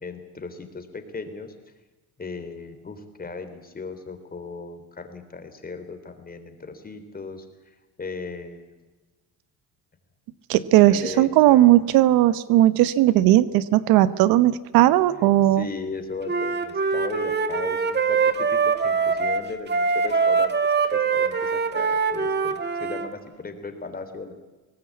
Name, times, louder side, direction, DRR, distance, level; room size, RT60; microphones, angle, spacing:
voice 1, 0.0-1.6 2.2-8.9 10.9-11.8 15.1-20.5 20.9-24.3, left 4 dB, 25° left, 8 dB, 3.6 m, -37 dB
voice 2, 10.5-15.7, right 14 dB, 85° right, 16 dB, 1.0 m, -17 dB
Wind instrument woodwind instrument, 16.3-23.1, right 5 dB, 30° right, 2.0 m, -23 dB
22.5 x 19.0 x 8.5 m, 1.2 s
cardioid pair, 100°, 35 cm